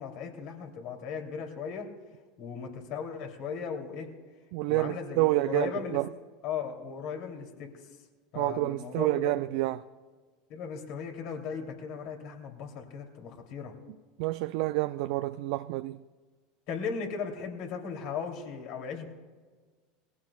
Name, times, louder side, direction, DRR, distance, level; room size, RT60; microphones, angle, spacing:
voice 1, 0.0-1.9 2.4-4.1 4.7-6.0 6.4-7.7 8.3-9.4 10.5-13.7 16.7-19.1, left 6 dB, 60° left, 3.1 m, -37 dB
voice 2, 4.5-6.1 8.3-9.8 14.2-16.0, right 18 dB, 65° right, 0.4 m, -28 dB
20.5 x 16.0 x 2.4 m
hypercardioid pair, 85°, 0 cm